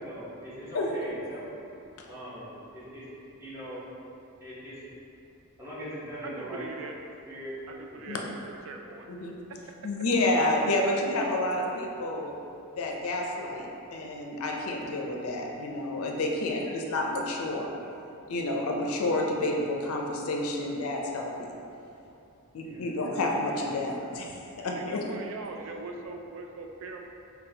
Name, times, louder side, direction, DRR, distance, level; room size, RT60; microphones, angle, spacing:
voice 1, 0.0-1.7 2.1-3.1 3.4-3.9 4.4-4.8 5.6-6.7 7.3-7.6 7.9-8.1 22.6-22.9, equal, 10° right, -10 dB, 0.9 m, -41 dB
voice 2, 6.2-7.0 7.7-9.1 9.5-9.8 24.6-27.1, right 3 dB, 65° right, 2 dB, 0.3 m, -41 dB
voice 3, 9.8-12.3 12.8-17.7 18.3-21.5 22.5-25.0, left 2 dB, 75° left, 0 dB, 0.5 m, -29 dB
5.5 x 2.3 x 2.7 m, 2.7 s
head